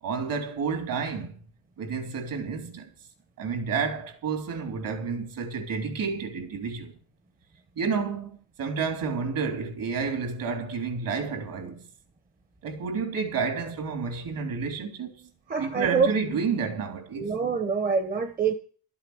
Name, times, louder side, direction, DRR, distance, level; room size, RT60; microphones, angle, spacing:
voice 1, 0.0-1.3 1.8-2.9 3.4-6.9 7.8-11.8 12.6-15.3 15.6-17.3, right 5 dB, 55° right, 3.5 m, -30 dB
voice 2, 15.5-16.1 17.1-18.5, right 5 dB, 20° right, 1.3 m, -25 dB
12.0 x 8.4 x 8.1 m
cardioid pair, 105°, 40 cm